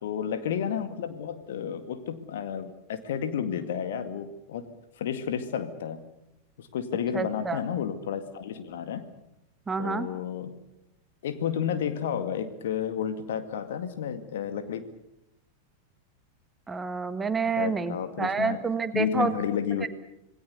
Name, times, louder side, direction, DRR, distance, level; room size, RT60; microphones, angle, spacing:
voice 1, 0.0-4.7 5.0-6.0 6.6-9.1 9.8-10.5 11.2-14.9 17.4-18.6 18.9-19.9, left 8 dB, 60° left, 9 dB, 2.1 m, -31 dB
voice 2, 7.1-7.6 9.7-10.1 16.7-19.3 19.8-19.9, right 4 dB, 15° right, 11 dB, 1.5 m, -28 dB
27.0 x 20.0 x 6.9 m, 0.83 s
figure-of-eight pair, 90°, 0 cm